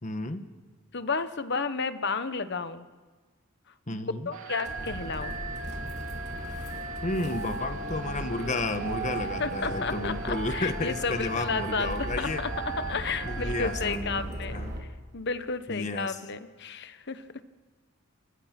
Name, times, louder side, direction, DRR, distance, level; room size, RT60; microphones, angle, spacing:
voice 1, 0.0-0.5 3.9-4.3 7.0-12.5 13.2-14.9 15.7-16.2, left 2 dB, 35° left, 9 dB, 1.3 m, -32 dB
voice 2, 0.9-2.9 3.9-5.3 9.4-14.9 15.1-17.2, left 4 dB, 55° left, 11 dB, 1.2 m, -32 dB
sound 1, 4.3-13.9, right 4 dB, 90° right, 3.0 m, -38 dB
sound 2, 4.7-14.8, equal, 55° right, 3.6 m, -37 dB
29.5 x 26.0 x 6.0 m, 1.4 s
head